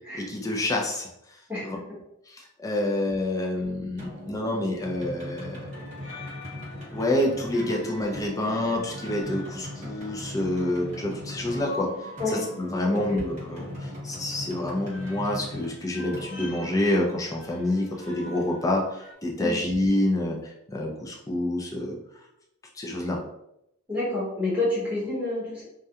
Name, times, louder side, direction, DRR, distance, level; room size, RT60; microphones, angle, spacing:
voice 1, 0.2-1.1 1.6-1.8 2.3-5.6 6.9-11.9 12.3-22.0 22.7-23.2, left 1 dB, 15° left, -1 dB, 0.4 m, -28 dB
voice 2, 1.5-2.0 12.2-12.4 12.9-13.2 19.4-19.6 23.9-25.6, left 2 dB, 5° right, -9 dB, 0.9 m, -29 dB
sound 1, 4.0-17.5, left 1 dB, 35° right, 1.0 m, -40 dB
sound 2, 5.7-19.1, left 2 dB, 55° left, 0.7 m, -45 dB
2.3 x 2.1 x 2.7 m, 0.82 s
head